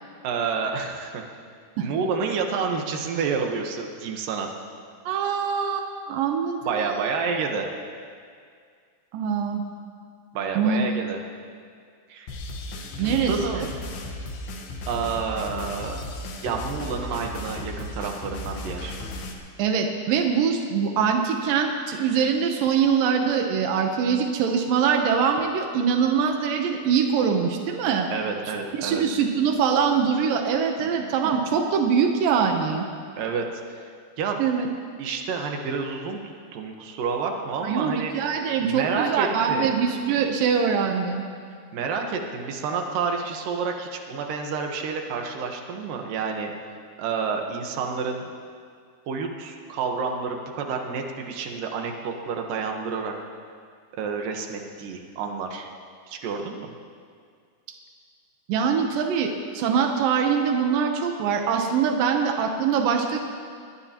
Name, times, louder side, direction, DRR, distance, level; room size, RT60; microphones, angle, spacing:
voice 1, 0.2-1.2 1.8-4.5 6.6-7.7 10.3-11.2 12.1-12.4 13.0-13.6 14.9-16.0 16.4-19.0 28.1-29.0 30.8-31.1 33.2-33.9 34.2-34.4 35.0-38.1 38.6-39.8 41.7-46.5 47.0-48.3 49.1-53.1 53.9-55.7 56.1-56.7, right 5 dB, 65° right, 2 dB, 2.3 m, -29 dB
voice 2, 5.1-7.1 9.1-9.6 10.6-10.8 13.0-13.7 19.6-28.1 28.7-32.9 34.4-34.7 37.6-41.2 58.5-63.2, right 6 dB, 85° right, 3 dB, 1.9 m, -23 dB
sound 1, 12.3-19.3, left 1 dB, 70° left, 3.1 m, -35 dB
21.5 x 21.5 x 3.0 m, 2.1 s
omnidirectional pair, 5.4 m